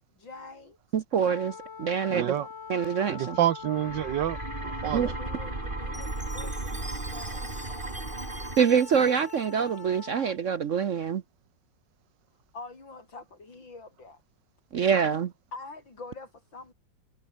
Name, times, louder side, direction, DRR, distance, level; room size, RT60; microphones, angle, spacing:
voice 1, 0.2-0.8 4.8-7.9 12.5-14.2 15.5-16.7, left 3 dB, 85° left, 5.8 m, -45 dB
voice 2, 0.9-2.4 2.7-3.4 4.9-5.1 8.6-11.2 14.7-15.3, right 7 dB, 55° right, 0.9 m, -25 dB
Wind instrument woodwind instrument, 1.2-10.4, left 6 dB, 40° left, 1.6 m, -44 dB
voice 3, 2.1-2.5 3.1-4.4 4.6-5.0, right 11 dB, 75° right, 1.5 m, -28 dB
sound 1, 3.6-8.6, right 3 dB, 25° right, 2.5 m, -35 dB
Chime, 5.9-10.3, right 1 dB, 5° right, 1.2 m, -46 dB
omnidirectional pair, 2.0 m